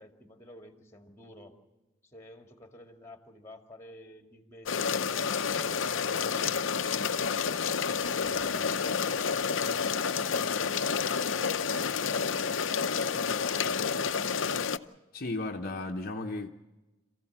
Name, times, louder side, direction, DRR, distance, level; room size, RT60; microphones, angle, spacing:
voice 1, 0.0-1.6 2.0-9.0 9.4-12.5 13.0-14.7, left 1 dB, 15° left, 2.1 m, -51 dB
sound 1, 4.7-14.8, left 6 dB, 70° left, 0.7 m, -29 dB
voice 2, 15.1-16.5, left 2 dB, 45° left, 1.0 m, -34 dB
27.0 x 15.5 x 7.4 m
head